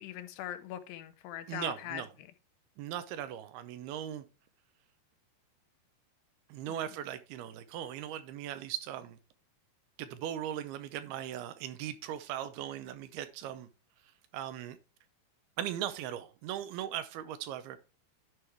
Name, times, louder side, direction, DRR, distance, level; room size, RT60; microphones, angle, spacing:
voice 1, 0.0-2.3 6.7-6.8, left 12 dB, 90° left, 2.8 m, -41 dB
voice 2, 1.5-2.1 2.8-4.2 6.5-9.2 10.0-13.7 14.3-14.8 15.6-17.8, right 11 dB, 80° right, 2.5 m, -38 dB
11.0 x 4.7 x 3.4 m
omnidirectional pair, 4.8 m